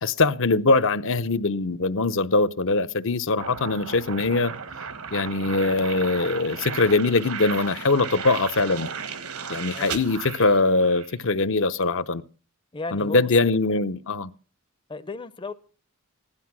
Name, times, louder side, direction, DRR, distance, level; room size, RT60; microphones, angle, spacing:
voice 1, 0.0-4.5 5.1-8.9 9.5-12.2 12.9-14.3, left 3 dB, 60° left, 0.7 m, -22 dB
sound 1, 3.4-11.2, right 6 dB, 75° right, 1.4 m, -35 dB
voice 2, 9.7-10.0 12.7-13.3 14.9-15.5, left 3 dB, 20° left, 0.6 m, -34 dB
16.0 x 11.5 x 6.0 m
head